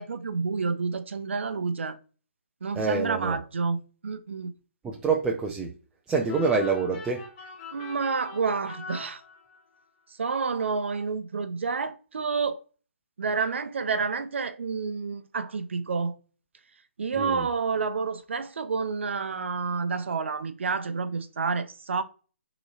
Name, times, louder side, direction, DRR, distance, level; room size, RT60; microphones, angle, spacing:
voice 1, 0.0-2.0 2.6-4.5 7.7-9.2 10.2-12.6 13.2-16.2 17.0-22.0, right 5 dB, 60° right, 0.6 m, -29 dB
voice 2, 2.7-3.4 4.8-5.7 6.1-7.3 17.2-17.5, right 4 dB, 10° right, 0.4 m, -26 dB
sound 1, 6.3-9.8, left 5 dB, 30° left, 0.9 m, -43 dB
6.0 x 3.0 x 2.5 m
figure-of-eight pair, 140°, 7 cm